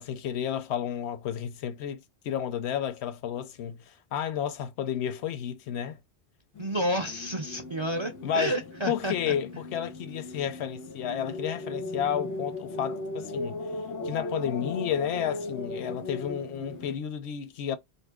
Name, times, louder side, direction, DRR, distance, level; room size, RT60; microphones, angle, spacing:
voice 1, 0.0-6.0 8.2-8.6 8.9-13.6 14.0-17.8, left 9 dB, 80° left, 0.8 m, -32 dB
sound 1, 6.5-17.0, left 2 dB, 25° left, 0.4 m, -37 dB
voice 2, 6.6-9.3, right 1 dB, 45° right, 0.4 m, -30 dB
2.7 x 2.5 x 3.5 m
omnidirectional pair, 1.1 m